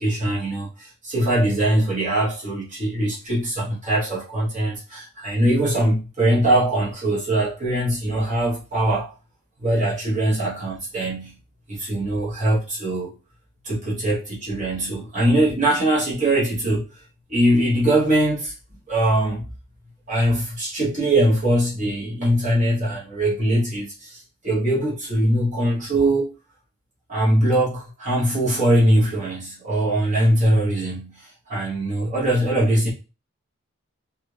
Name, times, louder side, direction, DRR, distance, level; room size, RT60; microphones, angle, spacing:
voice 1, 0.0-9.1 9.6-11.4 11.7-13.1 13.6-16.8 17.3-18.5 18.9-19.4 20.1-26.3 27.1-32.9, right 1 dB, 35° right, 1.1 m, -22 dB
3.3 x 2.3 x 3.2 m
head